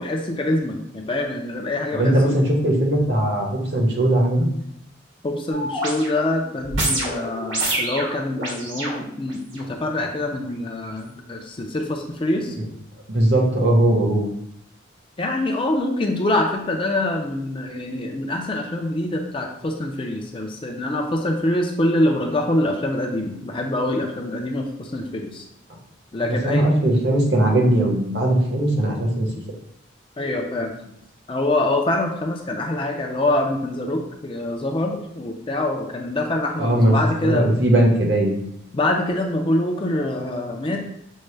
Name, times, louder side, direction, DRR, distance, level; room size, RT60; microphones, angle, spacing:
voice 1, 0.0-2.4 5.2-12.6 15.2-25.5 26.1-26.7 30.2-30.7 31.3-37.5 38.7-40.9, left 1 dB, 25° left, 3 dB, 0.4 m, -25 dB
voice 2, 1.9-4.5 12.5-12.6 13.1-14.3 26.2-29.3 36.6-37.0 37.2-38.4, right 1 dB, 60° right, 0 dB, 0.9 m, -19 dB
sound 1, 5.5-9.6 10.3-10.4, right 1 dB, 85° right, 1.6 m, -28 dB
6.3 x 2.1 x 3.3 m, 0.74 s
head